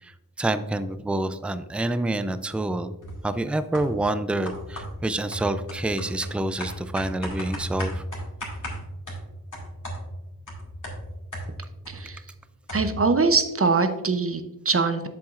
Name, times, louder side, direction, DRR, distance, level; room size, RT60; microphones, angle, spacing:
voice 1, 0.0-2.9 3.2-8.0, right 2 dB, 5° right, 12 dB, 0.3 m, -27 dB
sound 1, 3.0-3.3 3.7-4.1 4.5-12.1 12.3-12.4 12.7-13.1, equal, 55° left, 2.2 m, -35 dB
voice 2, 11.9-12.2 12.7-15.1, right 4 dB, 35° right, 9 dB, 0.7 m, -23 dB
7.7 x 7.1 x 2.4 m, 0.99 s
wide cardioid pair, 70°, 38 cm